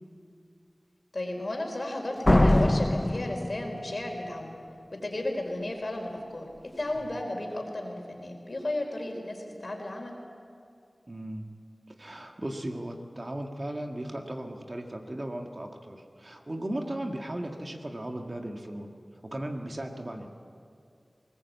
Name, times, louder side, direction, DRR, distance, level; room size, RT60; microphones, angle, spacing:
voice 1, 1.1-4.6 4.9-6.5 6.8-10.1, left 1 dB, 55° left, 2 dB, 4.3 m, -34 dB
Slam, 2.3-4.2, left 1 dB, 25° left, 0.5 m, -23 dB
voice 2, 11.1-11.5 12.0-18.9 19.2-20.3, right 1 dB, 40° right, 3 dB, 1.8 m, -36 dB
20.5 x 19.5 x 8.3 m, 2.4 s
wide cardioid pair, 60°, 0 cm